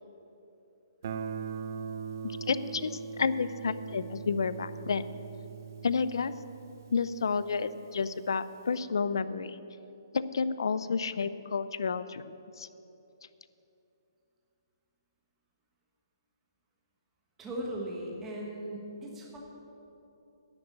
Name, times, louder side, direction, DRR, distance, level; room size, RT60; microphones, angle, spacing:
Guitar, 1.0-7.8, right 6 dB, 40° right, 0.5 m, -41 dB
voice 1, 2.2-5.2 5.8-6.3 6.9-9.6 10.1-12.7, left 5 dB, 70° left, 15 dB, 0.5 m, -31 dB
voice 2, 17.4-19.4, right 1 dB, 10° right, -3 dB, 1.2 m, -38 dB
10.5 x 7.8 x 8.7 m, 2.9 s
hypercardioid pair, 175°, 2 cm